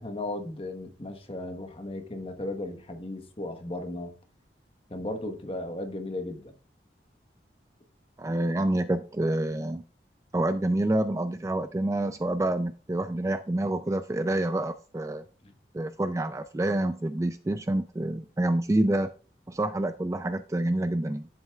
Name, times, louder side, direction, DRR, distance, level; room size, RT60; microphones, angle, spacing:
voice 1, 0.0-4.1 4.9-6.5 15.4-15.5, left 1 dB, 30° left, 1.1 m, -36 dB
voice 2, 8.2-9.8 10.3-15.2 15.7-19.1 19.5-21.3, right 1 dB, 15° right, 0.3 m, -27 dB
10.5 x 7.6 x 2.3 m
head